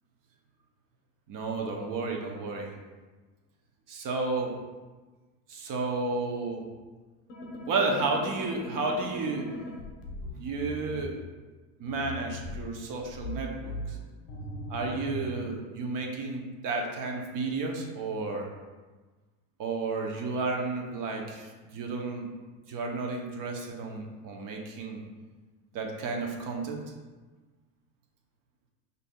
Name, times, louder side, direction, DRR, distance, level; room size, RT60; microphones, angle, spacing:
voice 1, 1.3-2.7 3.9-4.5 5.5-6.7 7.7-9.5 10.3-11.2 11.8-14.0 14.7-18.5 19.6-22.3 22.7-25.0 25.7-26.8, right 3 dB, 40° right, 1 dB, 0.8 m, -32 dB
sound 1, 7.3-11.0 11.9-15.4, left 1 dB, 75° left, 0.9 m, -40 dB
5.3 x 2.7 x 2.2 m, 1.3 s
hypercardioid pair, 85°, 48 cm